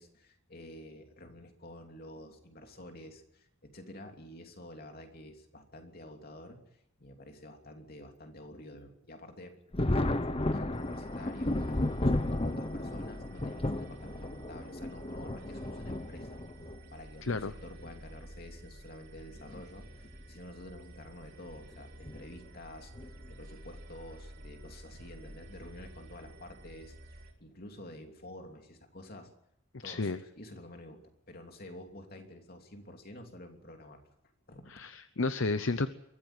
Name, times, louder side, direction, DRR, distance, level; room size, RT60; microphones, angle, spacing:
voice 1, 0.0-9.5 9.9-11.6 12.0-16.4 16.9-29.3 29.8-31.0 31.3-34.0 34.5-34.8, left 1 dB, 45° left, 4 dB, 3.0 m, -49 dB
Thunder, 9.7-16.8 17.8-17.9 19.4-19.6 20.0-20.1 22.0-22.2 22.9-23.3, left 1 dB, 25° left, 1.1 m, -33 dB
sound 1, 10.7-27.3, right 1 dB, 55° right, 4.4 m, -51 dB
voice 2, 17.2-17.5 29.8-30.2 34.7-35.9, left 3 dB, 65° left, 11 dB, 0.8 m, -31 dB
23.0 x 14.5 x 9.0 m, 0.78 s
head